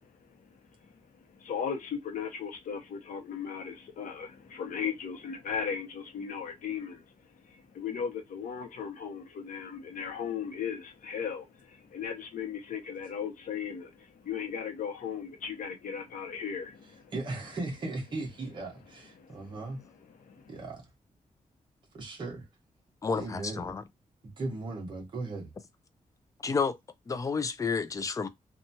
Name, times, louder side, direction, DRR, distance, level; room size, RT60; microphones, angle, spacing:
voice 1, 0.8-7.0 7.4-17.1 19.2-19.7 20.1-20.6, left 7 dB, 80° left, 0.7 m, -37 dB
voice 2, 17.1-19.8 20.5-20.9 21.9-22.4 23.2-23.7 24.2-25.5, right 2 dB, 35° right, 1.0 m, -37 dB
voice 3, 23.0-23.8 26.4-26.8 27.1-28.3, left 5 dB, 25° left, 0.3 m, -30 dB
2.8 x 2.2 x 2.6 m
wide cardioid pair, 175°, 14 cm